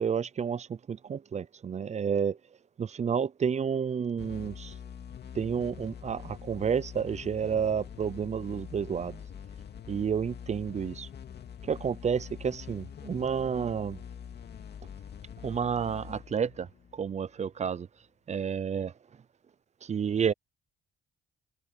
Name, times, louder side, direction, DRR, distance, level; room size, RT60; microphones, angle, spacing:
voice 1, 0.0-2.4 2.8-4.7 5.4-9.2 9.9-11.1 11.6-14.0 15.4-16.7 16.9-17.9 18.3-18.9 19.8-20.3, right 7 dB, 35° right, 0.5 m, -30 dB
sound 1, 4.2-17.5, left 8 dB, 55° left, 2.5 m, -45 dB
cardioid pair, 90°, 20 cm